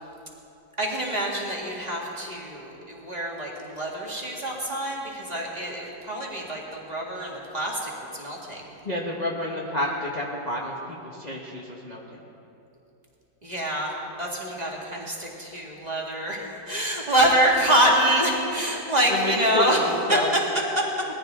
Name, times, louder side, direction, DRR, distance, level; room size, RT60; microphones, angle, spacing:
voice 1, 0.8-7.9 8.2-8.7 13.4-13.9 14.2-19.8 20.1-20.2, right 1 dB, 25° right, -3 dB, 2.1 m, -25 dB
voice 2, 8.8-12.2 19.1-20.3, left 1 dB, 30° left, -3 dB, 1.1 m, -29 dB
20.5 x 14.5 x 3.7 m, 2.9 s
omnidirectional pair, 1.9 m